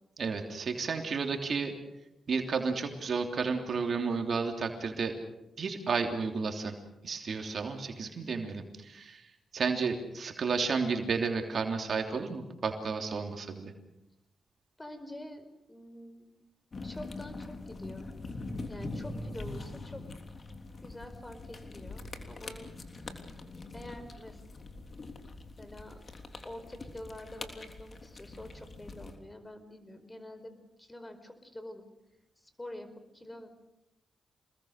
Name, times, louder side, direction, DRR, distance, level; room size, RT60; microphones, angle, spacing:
voice 1, 0.2-1.7 2.3-5.1 5.6-6.7 7.0-13.7, right 5 dB, 60° right, 4 dB, 3.2 m, -32 dB
voice 2, 14.8-16.3 16.8-18.1 18.7-20.1 20.8-22.7 23.7-24.4 25.6-26.0 26.4-31.8 32.4-33.5, left 1 dB, 20° left, 9 dB, 4.7 m, -46 dB
sound 1, 16.7-29.2, left 2 dB, 50° left, 3.3 m, -43 dB
27.0 x 21.0 x 6.7 m, 0.92 s
supercardioid pair, 45°, 0 cm